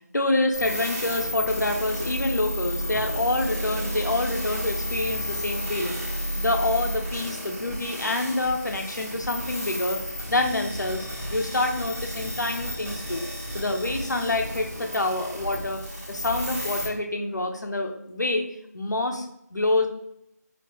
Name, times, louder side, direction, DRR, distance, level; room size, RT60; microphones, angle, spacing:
voice 1, 0.1-6.0 6.4-13.3 13.5-18.5 18.7-19.9, left 2 dB, 85° left, 4 dB, 0.6 m, -27 dB
sound 1, 0.5-16.8, equal, 10° right, 1.0 m, -32 dB
2.9 x 2.8 x 3.0 m, 0.78 s
figure-of-eight pair, 170°, 9 cm